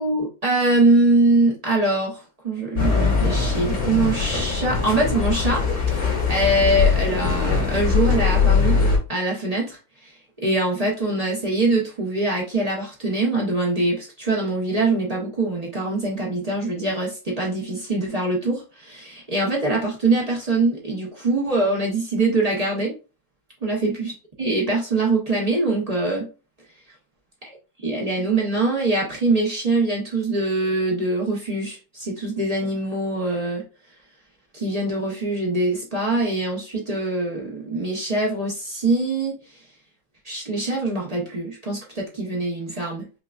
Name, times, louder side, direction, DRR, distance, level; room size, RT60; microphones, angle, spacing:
voice 1, 0.0-5.6 5.9-22.9 23.6-24.1 24.4-26.3 27.8-33.6 34.5-39.6 40.2-43.2, right 2 dB, 40° right, -2 dB, 0.5 m, -23 dB
sound 1, 2.8-9.0, left 5 dB, 50° left, 2.1 m, -21 dB
5.7 x 2.3 x 2.4 m, 0.32 s
omnidirectional pair, 2.1 m